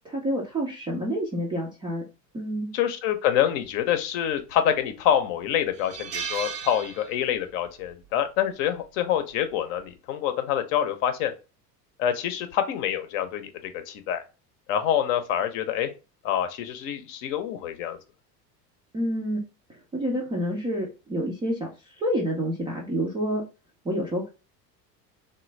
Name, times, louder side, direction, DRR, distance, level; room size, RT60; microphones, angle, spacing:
voice 1, 0.0-2.0 2.3-2.7 18.9-19.4 19.9-21.7 22.0-23.4 23.8-24.3, equal, 10° right, -2 dB, 0.3 m, -28 dB
voice 2, 2.7-11.3 12.0-13.5 13.9-14.2 14.7-15.9 16.2-18.0, left 10 dB, 55° left, 8 dB, 0.7 m, -26 dB
sound 1, 4.3-4.9 5.2-5.3 5.7-7.6 7.8-8.1 9.3-9.6, right 7 dB, 90° right, 0.5 m, -36 dB
3.1 x 2.2 x 3.1 m, 0.30 s
figure-of-eight pair, 75°, 49 cm